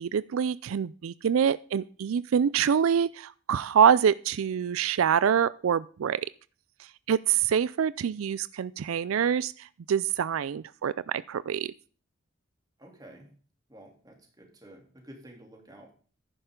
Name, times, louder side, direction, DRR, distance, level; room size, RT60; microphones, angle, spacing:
voice 1, 0.0-6.2 7.1-11.7, right 8 dB, 85° right, 19 dB, 0.4 m, -25 dB
voice 2, 12.8-13.3 13.7-15.9, right 1 dB, 20° right, 1 dB, 3.0 m, -50 dB
11.0 x 9.9 x 3.7 m, 0.40 s
head